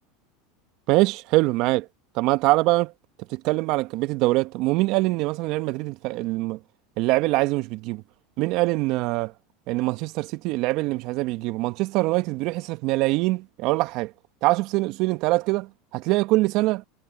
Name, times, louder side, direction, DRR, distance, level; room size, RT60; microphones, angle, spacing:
voice 1, 0.9-1.9 2.1-2.9 3.3-6.6 7.0-8.0 8.4-9.3 9.7-14.1 14.4-16.8, right 21 dB, 60° right, 1.2 m, -23 dB
hypercardioid pair, 95°, 0 cm